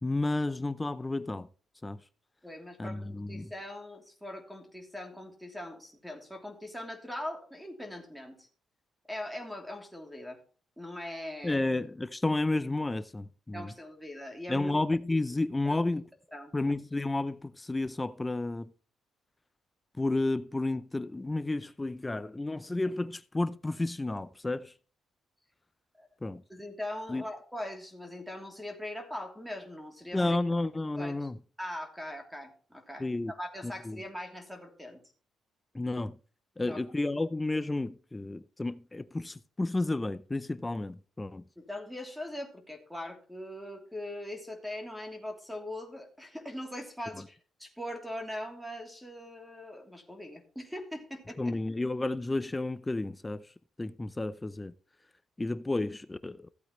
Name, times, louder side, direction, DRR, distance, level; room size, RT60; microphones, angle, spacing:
voice 1, 0.0-1.5 1.8-2.0 2.8-3.5 11.4-13.7 14.5-16.0 16.5-18.7 20.0-24.7 26.2-26.4 27.1-27.2 30.1-31.4 33.0-33.3 33.6-34.0 35.7-36.2 36.6-41.4 51.4-53.5 53.8-54.7 55.4-56.5, left 2 dB, 15° left, 0.5 m, -31 dB
voice 2, 2.4-8.5 9.1-10.4 10.8-11.6 13.5-14.8 15.6-15.8 16.3-16.5 26.0-26.1 26.5-30.4 31.0-31.3 31.6-35.0 36.6-36.8 41.6-51.4, left 1 dB, ahead, 3.1 m, -41 dB
15.5 x 8.4 x 3.1 m
cardioid pair, 125°, 0 cm